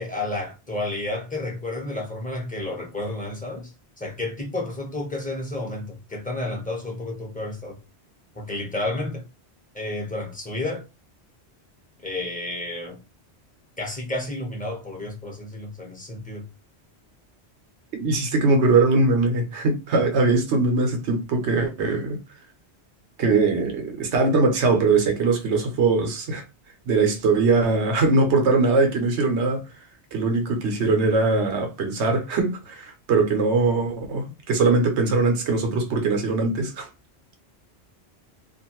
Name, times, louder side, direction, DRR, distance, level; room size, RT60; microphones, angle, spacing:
voice 1, 0.0-3.7 4.0-7.8 8.3-9.2 9.7-10.9 12.0-13.0 13.8-16.4, left 2 dB, 10° left, 0.8 m, -31 dB
voice 2, 17.9-22.2 23.2-26.4 26.8-29.6 30.1-36.9, right 3 dB, 85° right, 1.1 m, -21 dB
2.5 x 2.5 x 2.9 m
omnidirectional pair, 1.1 m